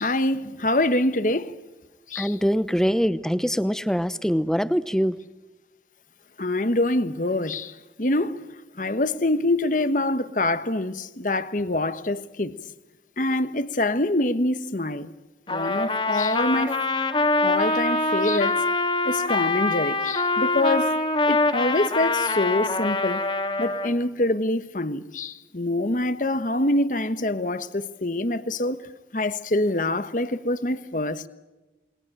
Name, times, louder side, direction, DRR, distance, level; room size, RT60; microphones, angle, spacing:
voice 1, 0.0-1.5 2.1-2.3 6.4-8.5 8.8-12.6 13.2-15.1 15.5-16.8 17.4-18.6 19.0-20.9 21.3-23.3 23.6-28.8 29.1-31.3, left 2 dB, 45° left, 1.2 m, -25 dB
voice 2, 2.2-5.2, equal, 5° left, 0.9 m, -23 dB
Trumpet, 15.5-23.9, left 2 dB, 30° left, 2.2 m, -24 dB
29.0 x 21.5 x 9.0 m
head